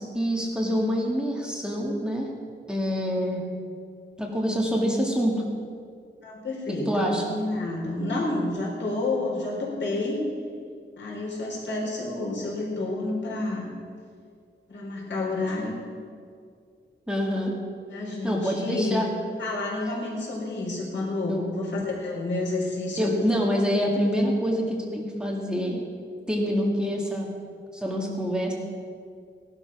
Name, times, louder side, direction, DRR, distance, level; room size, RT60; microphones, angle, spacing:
voice 1, 0.0-2.3 2.7-3.4 4.2-5.4 6.7-7.2 17.1-17.5 18.2-19.1 21.3-21.4 23.0-25.8 26.3-27.3 27.7-28.5, equal, 5° right, -2 dB, 2.0 m, -26 dB
voice 2, 6.2-10.2 11.0-13.7 14.7-15.8 17.9-19.0 19.4-23.4, left 2 dB, 70° left, -3 dB, 4.3 m, -29 dB
17.0 x 12.0 x 6.0 m, 2.2 s
wide cardioid pair, 145°, 19 cm